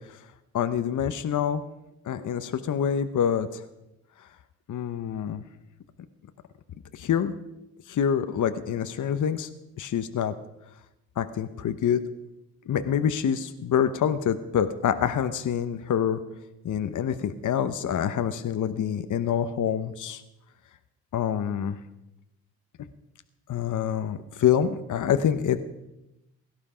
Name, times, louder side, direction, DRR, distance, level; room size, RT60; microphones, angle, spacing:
voice 1, 0.5-1.6 2.1-3.6 4.7-5.4 6.9-7.3 7.9-9.5 9.8-10.3 11.2-12.0 12.7-16.2 16.6-20.2 21.1-21.8 23.5-25.6, left 8 dB, 55° left, 10 dB, 1.0 m, -26 dB
17.0 x 12.0 x 5.1 m, 0.93 s
cardioid pair, 70°, 35 cm